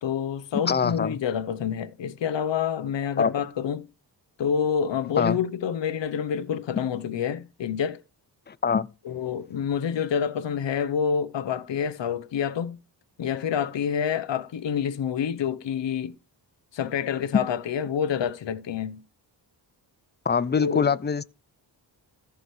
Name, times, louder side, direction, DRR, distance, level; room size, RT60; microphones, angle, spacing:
voice 1, 0.0-3.9 4.4-8.0 9.0-12.8 13.2-16.1 16.7-19.0 20.6-20.9, left 7 dB, 80° left, 1.0 m, -27 dB
voice 2, 0.7-1.2 3.2-3.3 5.2-5.4 8.5-8.9 20.3-21.2, left 6 dB, 25° left, 0.5 m, -23 dB
14.5 x 6.2 x 3.2 m
cardioid pair, 90°, 43 cm